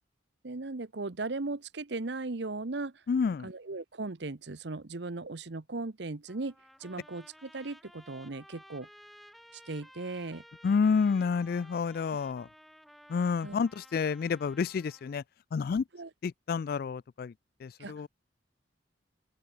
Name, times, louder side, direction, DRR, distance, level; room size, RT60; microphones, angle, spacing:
voice 1, 0.4-2.9 3.4-6.5 6.8-8.9 9.7-10.4 13.4-13.6 15.9-16.1 17.8-17.9, right 3 dB, 60° right, 0.9 m, -37 dB
voice 2, 3.1-3.5 10.6-12.5 13.1-15.2 15.5-15.8 16.2-17.3 17.6-18.1, left 5 dB, 50° left, 0.3 m, -29 dB
Trumpet, 6.3-15.2, equal, ahead, 1.0 m, -56 dB
open air
head